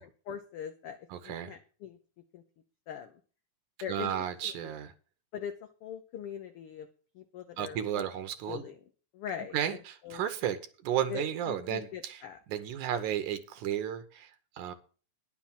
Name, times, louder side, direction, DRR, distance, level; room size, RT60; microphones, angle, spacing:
voice 1, 0.0-1.0 1.2-2.0 2.3-2.4 2.9-3.1 3.8-4.1 4.4-4.7 5.3-5.5 5.8-6.9 7.1-8.0 8.5-8.8 9.1-10.2 11.1-12.4, left 8 dB, 70° left, 6 dB, 1.3 m, -41 dB
voice 2, 1.1-1.6 3.9-4.9 7.6-8.6 9.5-10.6 10.8-12.2 12.5-14.7, right 10 dB, 75° right, 10 dB, 2.4 m, -33 dB
10.5 x 5.9 x 7.3 m, 0.38 s
omnidirectional pair, 3.6 m